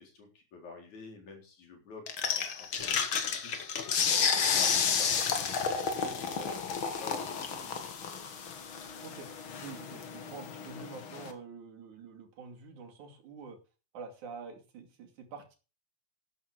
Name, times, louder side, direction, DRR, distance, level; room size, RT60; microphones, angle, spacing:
voice 1, 0.0-3.8 4.2-7.9, left 3 dB, 80° left, 2 dB, 5.3 m, -49 dB
sound 1, 2.1-11.3, left 6 dB, 50° left, 2.1 m, -31 dB
voice 2, 9.6-13.6 13.9-15.6, right 5 dB, 85° right, 2 dB, 4.0 m, -46 dB
12.5 x 10.5 x 4.9 m, 0.33 s
omnidirectional pair, 3.3 m